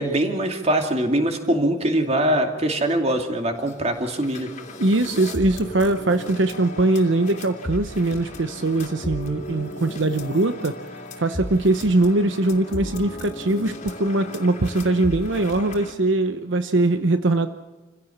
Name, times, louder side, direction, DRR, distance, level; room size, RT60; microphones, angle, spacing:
voice 1, 0.0-4.5, right 1 dB, 35° right, 4 dB, 2.6 m, -22 dB
sound 1, 3.7-3.8 4.0-15.9, left 1 dB, 40° left, 2.7 m, -35 dB
voice 2, 4.8-10.8 11.2-17.5, right 2 dB, 75° right, 9 dB, 0.9 m, -21 dB
27.5 x 16.5 x 7.3 m, 1.3 s
head